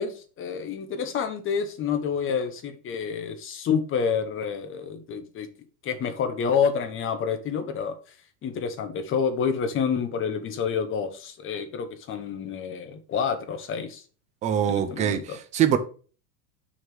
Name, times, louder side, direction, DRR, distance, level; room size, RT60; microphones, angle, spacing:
voice 1, 0.0-5.5 5.8-7.9 8.4-14.0 14.7-15.4, left 6 dB, 25° left, 1.0 m, -28 dB
voice 2, 14.4-15.8, right 9 dB, 15° right, 0.4 m, -23 dB
6.3 x 3.7 x 6.0 m
supercardioid pair, 135°, 49 cm